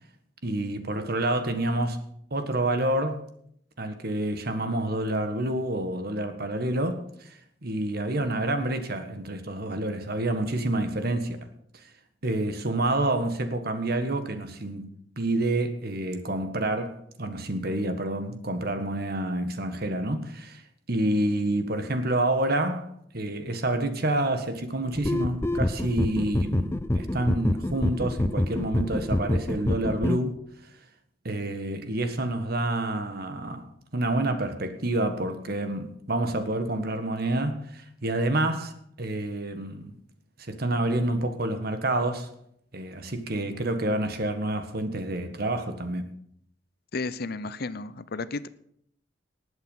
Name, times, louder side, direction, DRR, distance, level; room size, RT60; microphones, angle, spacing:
voice 1, 0.4-2.0 2.3-3.3 3.8-11.4 11.7-11.9 12.2-14.9 15.2-20.6 20.9-30.4 31.2-33.6 33.9-39.9 40.5-42.3 42.7-46.1, right 1 dB, 55° right, 1.6 m, -28 dB
sound 1, 24.9-30.2, left 1 dB, 15° left, 0.5 m, -27 dB
voice 2, 46.9-48.5, left 3 dB, 55° left, 0.7 m, -33 dB
19.5 x 8.1 x 5.5 m
head